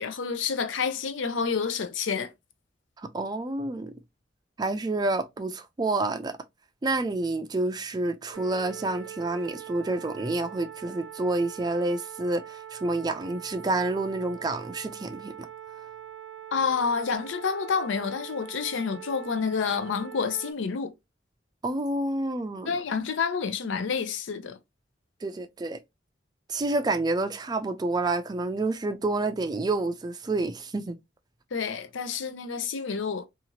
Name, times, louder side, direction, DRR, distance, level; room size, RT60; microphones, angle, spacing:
voice 1, 0.0-2.3 16.5-20.9 22.7-24.6 31.5-33.3, left 5 dB, 90° left, 0.5 m, -29 dB
voice 2, 3.1-3.9 4.6-6.3 6.8-15.3 21.6-22.7 25.2-25.8 26.5-31.0, right 2 dB, 20° right, 0.3 m, -28 dB
sound 1, 8.3-20.5, right 11 dB, 80° right, 0.5 m, -43 dB
2.7 x 2.4 x 2.8 m
head